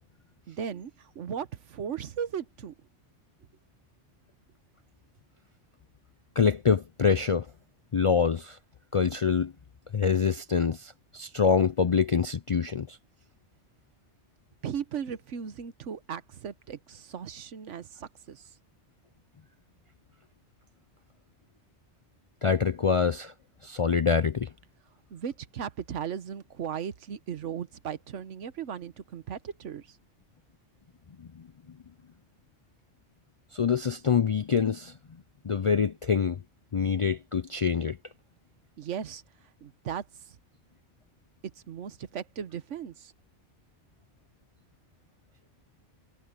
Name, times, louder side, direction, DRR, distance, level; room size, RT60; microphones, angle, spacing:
voice 1, 0.5-2.7 14.6-18.4 25.1-30.0 38.8-39.2 39.6-40.0 41.7-43.1, right 8 dB, 90° right, 1.3 m, -37 dB
voice 2, 6.4-7.5 7.9-8.6 8.9-9.5 9.9-13.0 22.4-23.3 23.6-24.5 33.5-34.9 35.4-36.4 36.7-38.0, left 6 dB, 60° left, 0.3 m, -25 dB
omnidirectional pair, 1.2 m